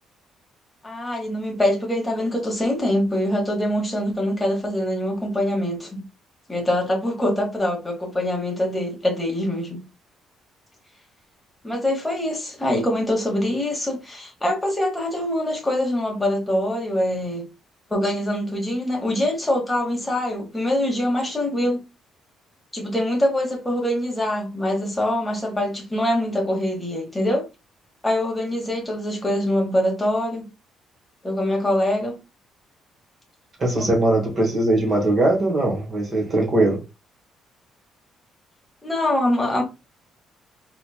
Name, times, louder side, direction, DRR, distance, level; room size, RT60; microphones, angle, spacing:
voice 1, 0.8-6.0 6.5-9.8 11.6-17.4 17.9-21.8 22.7-27.4 28.0-30.5 31.2-32.2 33.8-33.9 38.8-39.6, left 1 dB, 5° left, 1.1 m, -24 dB
voice 2, 33.6-36.8, right 2 dB, 30° right, 1.4 m, -20 dB
4.0 x 3.0 x 2.3 m
cardioid pair, 175°, 0 cm